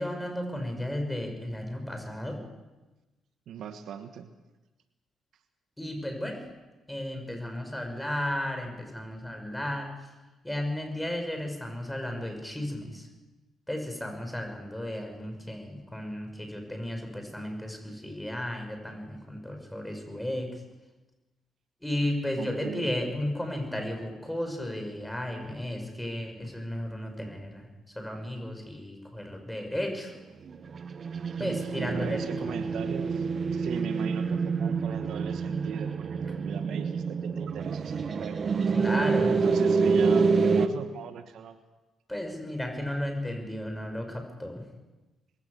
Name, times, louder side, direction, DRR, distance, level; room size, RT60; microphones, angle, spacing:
voice 1, 0.0-2.4 5.8-6.4 6.9-10.1 10.4-13.1 13.7-20.6 21.8-27.7 28.0-30.1 31.4-32.6 38.7-39.4 42.1-44.6, left 1 dB, 10° left, 4 dB, 6.9 m, -34 dB
voice 2, 3.5-4.3 22.4-22.9 31.4-38.4 39.1-41.6, right 8 dB, 70° right, 9 dB, 1.3 m, -39 dB
sound 1, 30.5-40.7, right 5 dB, 50° right, 1.4 m, -27 dB
21.5 x 17.5 x 7.0 m, 1.1 s
supercardioid pair, 60°, 0 cm